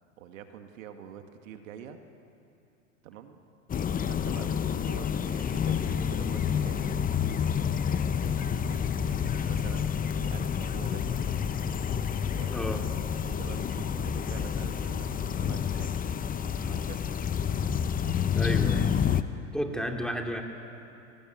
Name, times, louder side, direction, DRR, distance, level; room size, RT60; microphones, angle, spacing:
voice 1, 0.2-2.0 3.0-3.4 4.0-7.0 8.3-11.4 12.3-12.6 13.2-16.0 16.7-17.1, right 9 dB, 70° right, 6 dB, 2.1 m, -46 dB
sound 1, 3.7-19.2, left 8 dB, 20° left, 0.9 m, -29 dB
voice 2, 12.5-12.8 18.3-18.9 19.5-20.4, equal, ahead, 2 dB, 3.0 m, -32 dB
23.5 x 20.0 x 9.4 m, 2.7 s
hypercardioid pair, 95°, 41 cm